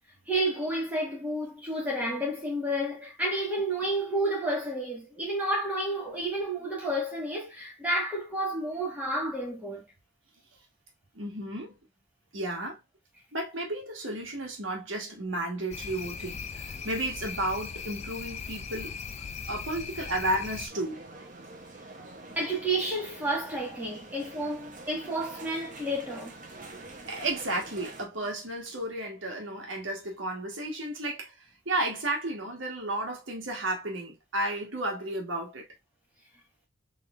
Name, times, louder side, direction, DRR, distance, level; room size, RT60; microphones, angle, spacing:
voice 1, 0.3-9.8 22.3-26.3, right 1 dB, 10° right, 1.5 m, -30 dB
voice 2, 11.1-11.8 12.3-12.8 13.3-19.0 19.5-21.0 27.0-31.3 31.6-35.7, right 1 dB, 70° right, 1.4 m, -33 dB
sound 1, 15.7-20.7, left 5 dB, 35° left, 0.4 m, -39 dB
sound 2, 20.7-28.1, right 2 dB, 40° right, 0.7 m, -46 dB
4.0 x 3.3 x 2.4 m
head